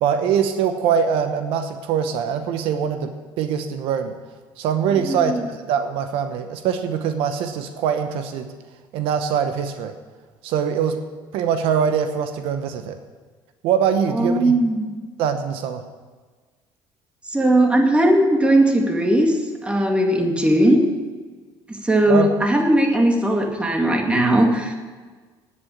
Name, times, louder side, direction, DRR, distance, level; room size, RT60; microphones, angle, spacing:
voice 1, 0.0-4.1 4.6-8.5 8.9-9.9 10.4-11.0 11.3-13.0 13.6-14.5 15.2-15.8 22.1-22.3, right 7 dB, 75° right, 8 dB, 0.9 m, -23 dB
voice 2, 4.9-5.4 14.1-14.9 17.3-20.8 21.7-24.7, right 1 dB, 10° right, 2 dB, 2.2 m, -18 dB
9.6 x 8.5 x 8.7 m, 1.4 s
supercardioid pair, 95°, 9 cm